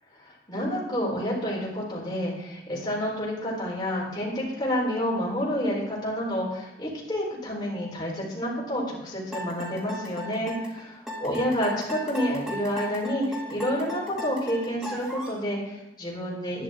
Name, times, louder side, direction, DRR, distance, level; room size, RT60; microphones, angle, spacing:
voice 1, 0.2-16.6, equal, 25° left, -4 dB, 4.3 m, -29 dB
sound 1, 9.3-15.4, left 1 dB, 5° right, 2.5 m, -36 dB
12.0 x 10.5 x 3.8 m, 0.95 s
head